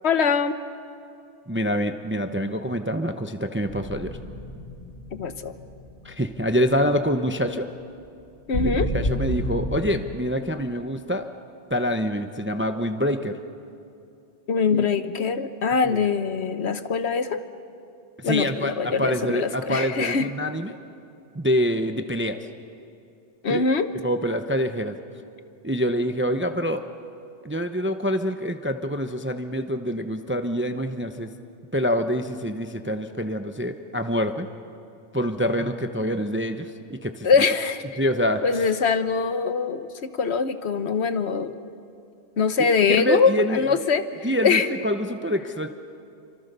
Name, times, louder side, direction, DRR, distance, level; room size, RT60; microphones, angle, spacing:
voice 1, 0.0-0.5 5.1-5.5 8.5-8.9 14.5-17.4 18.2-20.3 23.4-23.9 37.2-38.0 38.4-41.5 42.4-44.7, left 5 dB, 60° left, 11 dB, 1.3 m, -23 dB
voice 2, 1.5-4.2 6.0-7.7 8.6-11.3 11.7-13.4 14.7-14.8 15.9-16.0 18.2-20.8 21.3-22.4 23.5-23.6 24.0-25.0 25.6-26.8 27.4-31.3 31.7-34.5 35.1-37.3 38.0-38.6 42.9-43.6 44.2-45.7, equal, 10° right, 8 dB, 0.7 m, -26 dB
sound 1, 3.7-6.5 6.8-7.0 8.5-9.8, equal, 90° left, 3.8 m, -30 dB
28.5 x 25.5 x 6.8 m, 2.6 s
omnidirectional pair, 1.3 m